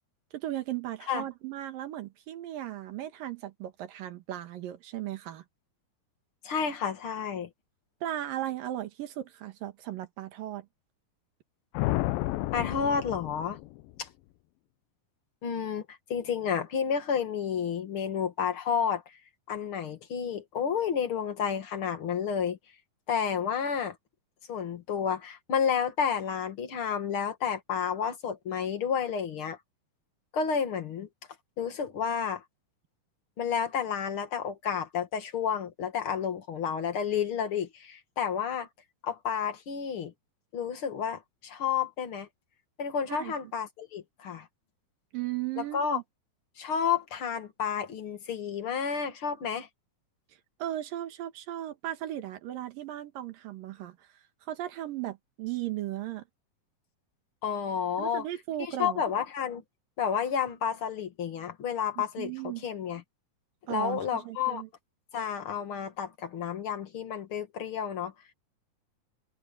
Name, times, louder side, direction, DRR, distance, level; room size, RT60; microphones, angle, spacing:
voice 1, 0.3-5.4 8.0-10.7 43.1-43.3 45.1-46.0 50.6-54.0 54.5-56.2 58.0-59.0 62.0-62.6 63.7-64.7, right 13 dB, 70° right, 3.1 m, -36 dB
voice 2, 6.4-7.5 12.5-13.6 14.0-14.1 15.4-19.0 19.5-22.6 23.1-24.0 24.5-29.6 30.3-31.1 31.6-32.4 33.4-38.7 39.0-40.1 40.5-42.3 42.8-44.5 45.6-46.0 46.6-49.7 57.4-58.2 58.6-59.6 60.0-63.0 63.7-64.6 65.1-68.1, left 7 dB, 40° left, 2.4 m, -31 dB
sound 1, 11.8-14.0, left 18 dB, 80° left, 2.3 m, -31 dB
omnidirectional pair, 4.2 m